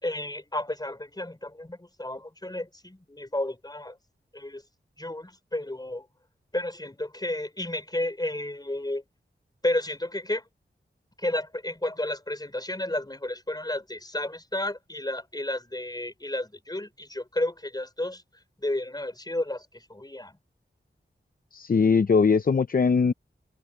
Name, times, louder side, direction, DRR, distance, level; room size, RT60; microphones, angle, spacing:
voice 1, 0.0-4.0 4.3-4.6 5.0-6.1 6.5-9.0 9.6-10.4 11.2-18.2 18.6-20.4, left 1 dB, 20° left, 4.4 m, -32 dB
voice 2, 21.5-23.1, left 5 dB, 45° left, 0.6 m, -21 dB
wide cardioid pair, 75°, 20 cm